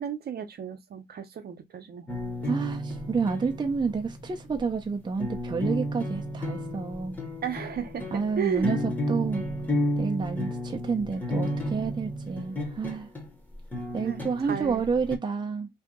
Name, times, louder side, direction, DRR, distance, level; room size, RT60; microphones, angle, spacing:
voice 1, 0.0-2.2 7.4-8.7 14.0-14.9, right 8 dB, 50° right, 0.8 m, -34 dB
sound 1, 2.1-15.2, equal, 10° left, 1.1 m, -32 dB
voice 2, 2.5-7.2 8.1-9.4 10.0-13.1 13.9-15.7, right 5 dB, 20° right, 0.6 m, -29 dB
2.8 x 2.5 x 3.6 m
cardioid pair, 90°, 20 cm